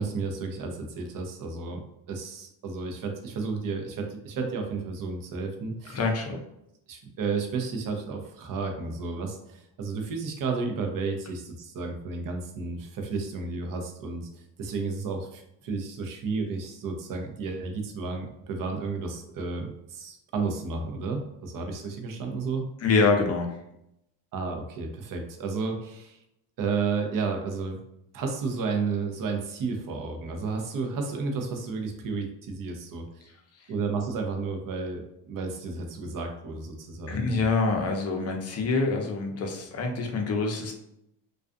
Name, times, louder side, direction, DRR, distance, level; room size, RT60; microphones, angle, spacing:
voice 1, 0.0-1.8 2.1-6.0 6.9-22.7 24.3-26.2 26.6-27.8 28.1-33.1 33.7-37.3, right 4 dB, 45° right, 4 dB, 0.6 m, -32 dB
voice 2, 5.9-6.4 22.8-23.6 37.1-40.7, left 4 dB, 35° left, 2 dB, 0.5 m, -26 dB
2.4 x 2.3 x 2.4 m, 0.80 s
supercardioid pair, 85°, 46 cm